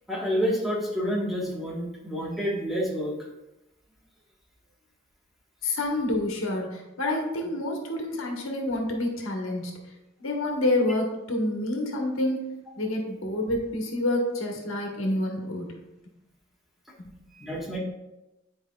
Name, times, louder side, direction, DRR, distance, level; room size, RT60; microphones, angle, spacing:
voice 1, 0.1-3.1 17.3-17.8, equal, ahead, -5 dB, 1.4 m, -28 dB
voice 2, 5.6-9.8 10.2-15.8, left 1 dB, 80° left, 1 dB, 1.3 m, -28 dB
9.8 x 4.7 x 2.3 m, 0.96 s
head